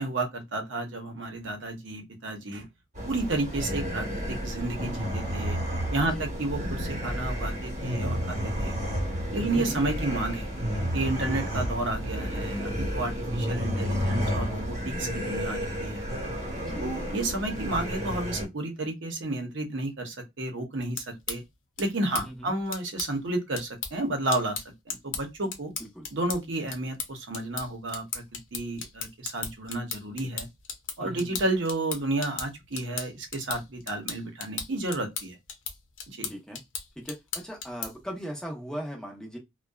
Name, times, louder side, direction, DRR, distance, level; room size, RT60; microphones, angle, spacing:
voice 1, 0.0-2.6 3.0-5.6 5.9-8.8 9.3-10.5 10.9-16.1 16.8-21.4 21.8-25.7 26.1-30.5 31.0-35.4 36.1-36.3, right 2 dB, 70° right, 0.7 m, -31 dB
sound 1, 2.9-18.5, equal, 35° right, 1.0 m, -31 dB
voice 2, 9.4-9.8 11.2-11.5 16.6-16.9 22.1-22.5 25.8-26.0 31.0-31.4 36.3-36.6 37.0-37.2 37.4-39.4, equal, 5° left, 0.6 m, -38 dB
sound 2, 20.7-38.1, left 6 dB, 75° left, 0.7 m, -39 dB
2.6 x 2.1 x 2.2 m
head